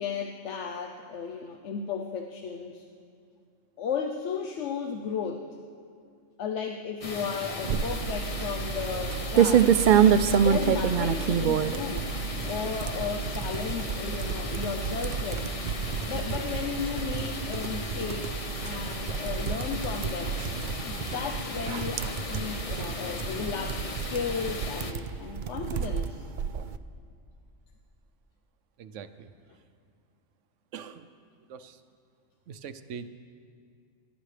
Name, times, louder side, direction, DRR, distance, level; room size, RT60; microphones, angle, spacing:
voice 1, 0.0-2.9 3.8-5.5 6.4-9.7 10.3-12.1 12.5-15.5 16.1-20.4 20.8-26.2, left 6 dB, 75° left, 4 dB, 1.0 m, -34 dB
sound 1, 7.0-24.9, left 2 dB, 30° left, 0.9 m, -37 dB
sound 2, 7.6-26.8, right 8 dB, 60° right, 0.5 m, -28 dB
voice 2, 28.8-29.3 30.7-31.1 31.5-31.8 32.5-33.1, right 7 dB, 90° right, 11 dB, 1.0 m, -42 dB
27.5 x 12.0 x 3.3 m, 2.3 s
omnidirectional pair, 1.2 m